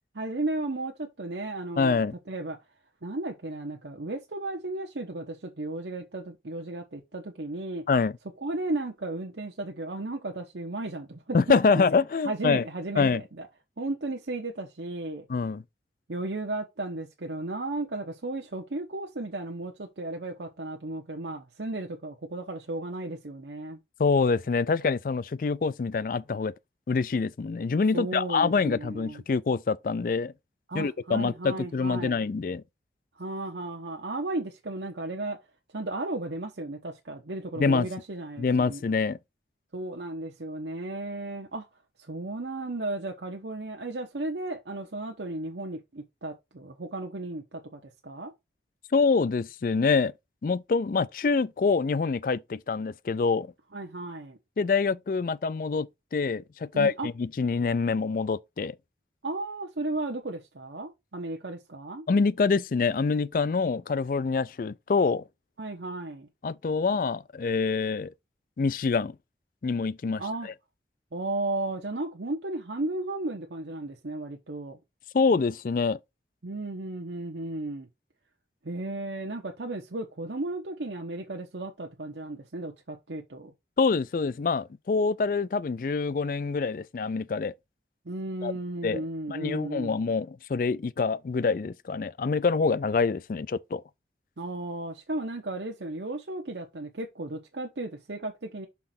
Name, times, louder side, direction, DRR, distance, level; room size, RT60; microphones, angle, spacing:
voice 1, 0.1-2.0 2.3-2.6 3.0-7.8 8.4-11.8 12.2-13.5 13.8-15.3 16.1-23.8 27.9-29.2 30.7-32.2 33.2-35.4 35.7-38.8 39.7-41.7 42.0-48.3 53.7-54.4 56.7-57.1 59.2-62.1 65.6-66.3 70.2-70.5 71.1-74.8 76.4-77.9 78.6-83.5 88.0-90.0 94.4-98.7, right 2 dB, 80° right, 1.0 m, -34 dB
voice 2, 1.8-2.1 7.9-8.1 11.3-12.6 13.0-13.2 15.3-15.6 24.0-26.5 26.9-30.3 30.7-32.6 37.6-37.9 38.4-39.2 48.9-50.1 50.4-53.5 54.6-58.8 62.1-65.2 66.4-68.1 68.6-69.2 69.6-70.5 75.1-76.0 83.8-87.5 88.4-88.5 88.8-89.0 89.3-93.8, left 4 dB, 50° left, 0.3 m, -26 dB
5.9 x 3.8 x 5.9 m
head